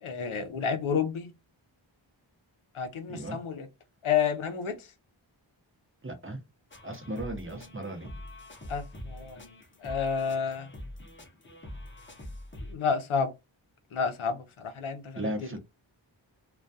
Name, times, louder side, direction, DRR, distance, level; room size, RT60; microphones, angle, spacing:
voice 1, 0.0-1.3 2.7-3.7 4.0-4.9 8.7-9.4 9.8-10.7 12.7-13.3 13.9-15.5, left 6 dB, 90° left, 0.6 m, -30 dB
voice 2, 6.0-6.4 6.8-8.1 15.2-15.6, right 1 dB, 25° right, 0.7 m, -36 dB
sound 1, 6.7-12.7, left 1 dB, 25° left, 0.7 m, -44 dB
2.2 x 2.2 x 2.6 m
wide cardioid pair, 50°, 48 cm